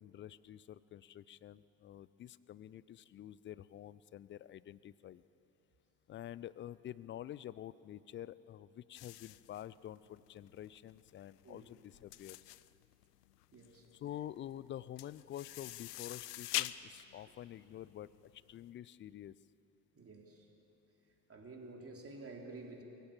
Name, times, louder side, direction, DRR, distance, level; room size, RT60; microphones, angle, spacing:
voice 1, 0.0-5.2 6.1-12.5 13.9-19.3, left 11 dB, 25° left, 19 dB, 0.4 m, -48 dB
sound 1, 8.9-18.6, left 15 dB, 80° left, 0.6 m, -44 dB
voice 2, 13.5-13.9 20.0-20.5 21.3-22.8, right 3 dB, 30° right, 0 dB, 3.6 m, -50 dB
23.0 x 16.0 x 7.4 m, 2.9 s
figure-of-eight pair, 55°, 48 cm